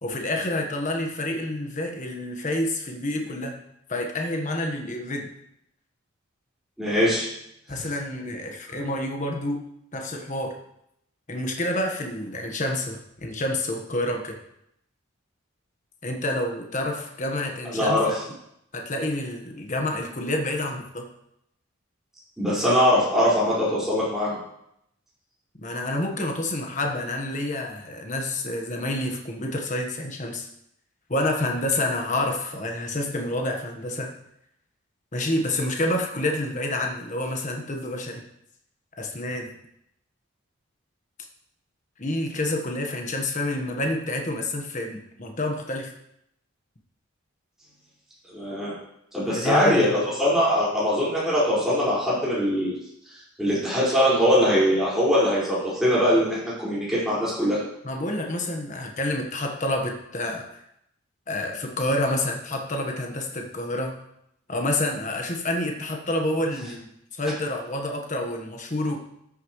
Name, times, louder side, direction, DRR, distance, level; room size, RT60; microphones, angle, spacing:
voice 1, 0.0-3.6 3.9-5.3 7.7-9.6 9.9-10.6 11.3-14.4 16.0-18.2 18.7-21.1 25.6-30.5 31.1-34.1 35.1-38.2 39.0-39.5 42.0-45.9 49.3-50.0 57.8-60.6 61.3-64.0 64.5-66.9 67.1-69.0, left 1 dB, 35° left, 2 dB, 1.3 m, -28 dB
voice 2, 6.8-7.3 17.7-18.2 22.4-24.4 48.3-48.7 49.1-52.7 53.4-57.6, equal, ahead, -9 dB, 5.2 m, -22 dB
13.0 x 10.0 x 3.2 m, 0.77 s
head